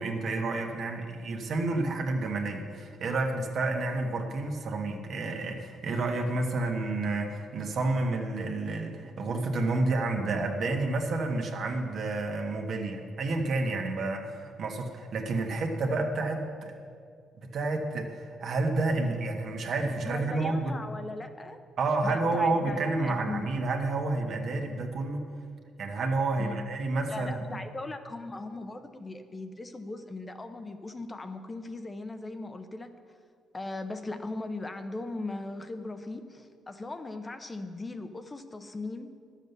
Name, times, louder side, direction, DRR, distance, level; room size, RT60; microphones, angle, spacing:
voice 1, 0.0-16.7 17.5-20.7 21.8-25.2 25.8-27.6, right 2 dB, 60° right, 2 dB, 1.4 m, -30 dB
voice 2, 20.0-21.6 22.0-23.5 26.4-26.6 27.1-32.9 33.5-39.1, left 2 dB, 25° left, 8 dB, 0.8 m, -38 dB
11.0 x 7.4 x 6.8 m, 2.2 s
cardioid pair, 90°, 0 cm